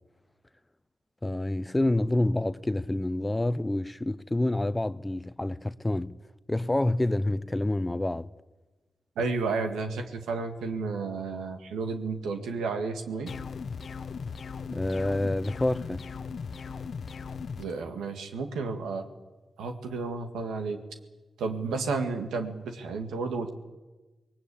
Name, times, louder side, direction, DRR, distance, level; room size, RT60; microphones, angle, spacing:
voice 1, 1.2-6.2 6.5-8.3 14.7-16.1, left 1 dB, 20° left, 0.8 m, -28 dB
voice 2, 9.2-13.3 17.6-19.0 19.6-20.8 21.4-23.5, right 4 dB, 90° right, 1.8 m, -32 dB
sound 1, 13.3-17.7, left 5 dB, 65° left, 0.8 m, -38 dB
21.0 x 19.0 x 8.6 m
supercardioid pair, 40°, 0 cm